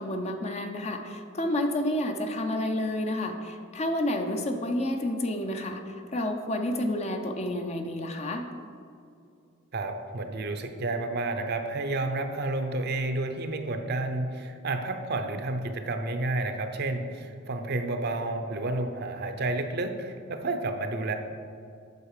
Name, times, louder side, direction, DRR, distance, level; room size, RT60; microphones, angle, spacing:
voice 1, 0.0-8.5, left 1 dB, 30° left, 5 dB, 0.6 m, -30 dB
voice 2, 9.7-21.1, right 2 dB, 50° right, 6 dB, 0.6 m, -30 dB
8.1 x 6.3 x 4.9 m, 2.5 s
head